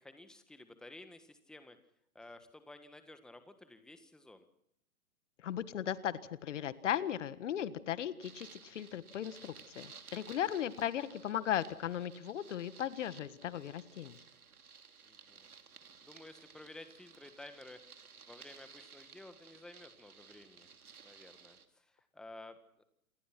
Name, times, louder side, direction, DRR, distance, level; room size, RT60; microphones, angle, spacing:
voice 1, 0.0-1.8 2.1-4.5 15.0-15.5 16.0-17.8 18.3-20.7 21.0-22.8, left 2 dB, ahead, 9 dB, 1.6 m, -53 dB
voice 2, 5.4-14.2, left 10 dB, 55° left, 15 dB, 1.7 m, -37 dB
sound 1, 8.2-21.7, right 6 dB, 80° right, 3.0 m, -57 dB
28.5 x 21.0 x 6.1 m, 0.72 s
hypercardioid pair, 130°, 44 cm